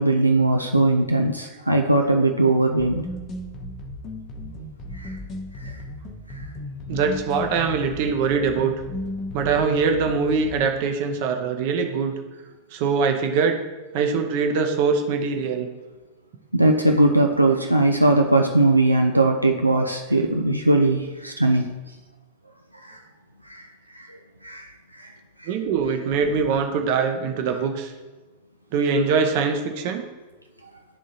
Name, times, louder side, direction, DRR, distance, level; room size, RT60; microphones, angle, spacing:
voice 1, 0.0-3.0 5.0-5.1 5.6-5.7 6.4-6.5 16.5-21.7 22.8-23.0 23.5-23.6 24.0-24.2 24.4-24.7 25.0-25.1, right 2 dB, 90° right, 3 dB, 0.4 m, -20 dB
sound 1, 2.8-10.8, left 1 dB, 30° left, 0.7 m, -35 dB
voice 2, 6.9-8.7 9.3-12.1 12.7-13.6 13.9-15.7 25.5-27.9 28.7-30.1, right 5 dB, 50° right, 5 dB, 0.7 m, -23 dB
11.0 x 3.6 x 2.8 m, 1.2 s
figure-of-eight pair, 90°, 0 cm